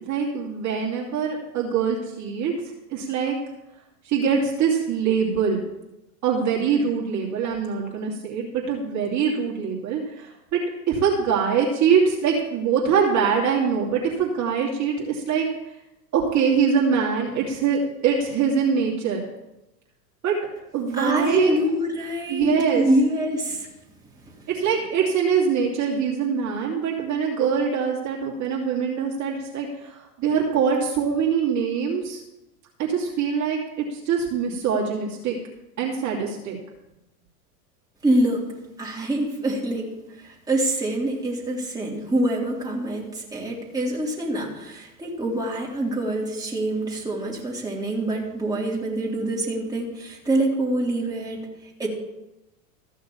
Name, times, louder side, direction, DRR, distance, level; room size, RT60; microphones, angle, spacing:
voice 1, 0.0-2.5 2.9-3.4 4.0-5.6 6.2-10.6 10.9-15.5 16.1-19.2 20.2-20.4 20.7-21.5 22.3-22.8 24.5-32.2 32.8-35.4 35.8-36.6, right 6 dB, 35° right, -3 dB, 2.7 m, -23 dB
voice 2, 20.9-23.7 38.0-38.4 38.8-51.9, right 1 dB, 10° right, -4 dB, 3.6 m, -25 dB
14.5 x 6.5 x 7.2 m, 0.95 s
hypercardioid pair, 110°, 47 cm